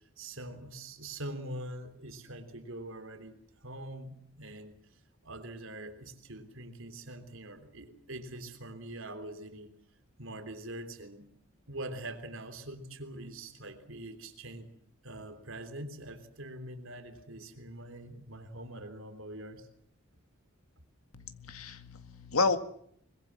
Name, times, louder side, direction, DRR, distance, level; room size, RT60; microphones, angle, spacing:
voice 1, 0.2-4.8 5.2-9.7 10.2-11.3 11.7-14.7 15.0-19.7, right 1 dB, 70° right, 7 dB, 3.4 m, -44 dB
voice 2, 21.1-22.6, left 4 dB, 85° left, 9 dB, 2.0 m, -31 dB
24.0 x 22.0 x 7.6 m, 0.67 s
head